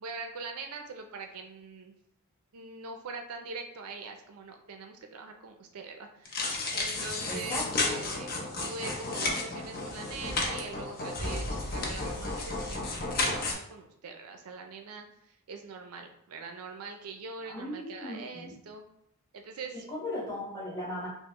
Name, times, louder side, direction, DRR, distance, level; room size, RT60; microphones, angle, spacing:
voice 1, 0.0-1.9 2.5-11.5 11.7-18.8 19.3-19.9, right 4 dB, 70° right, 4 dB, 0.5 m, -43 dB
sound 1, 6.3-13.5, left 2 dB, 45° left, 0.7 m, -32 dB
voice 2, 7.3-8.0 17.4-18.5 19.7-21.1, left 1 dB, 15° left, -5 dB, 1.2 m, -37 dB
5.3 x 2.0 x 3.0 m, 0.74 s
head